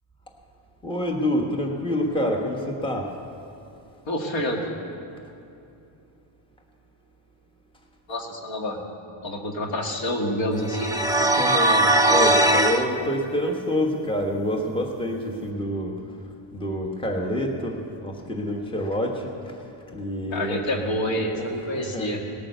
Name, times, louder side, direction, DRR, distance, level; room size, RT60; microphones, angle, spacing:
voice 1, 0.8-3.1 11.4-15.9 16.5-19.5 19.9-20.6 21.3-22.2, equal, 10° left, 1 dB, 1.3 m, -27 dB
voice 2, 4.1-4.6 8.1-8.8 9.2-11.0 20.3-22.2, equal, 65° left, 2 dB, 2.0 m, -27 dB
sound 1, 10.7-12.8, right 1 dB, 10° right, 0.6 m, -19 dB
18.5 x 8.9 x 6.8 m, 2.7 s
cardioid pair, 120°, 48 cm